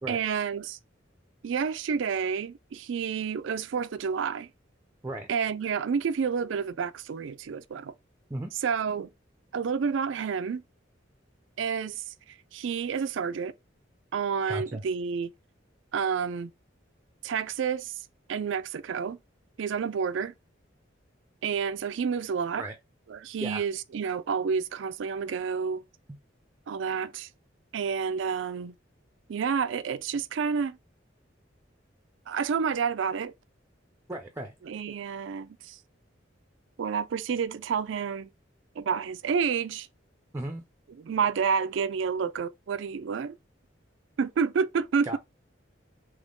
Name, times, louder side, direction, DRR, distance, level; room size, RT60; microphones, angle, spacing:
voice 1, 0.1-0.8 1.4-4.5 5.3-7.9 8.6-9.1 9.5-10.6 11.6-13.5 14.1-15.3 15.9-16.5 17.2-18.0 18.3-19.2 19.6-20.3 21.4-22.6 23.1-25.8 26.7-27.3 27.7-28.7 29.3-30.8 32.3-33.3 34.7-35.8 36.8-38.3 38.8-39.9 41.0-43.4 44.2-45.2, right 6 dB, 75° right, 0.4 m, -29 dB
voice 2, 14.5-14.8 22.6-22.8 23.4-23.6 26.1-26.2 34.1-34.5 40.3-40.6 45.0-45.2, right 1 dB, 15° right, 0.5 m, -35 dB
3.6 x 3.0 x 3.7 m
head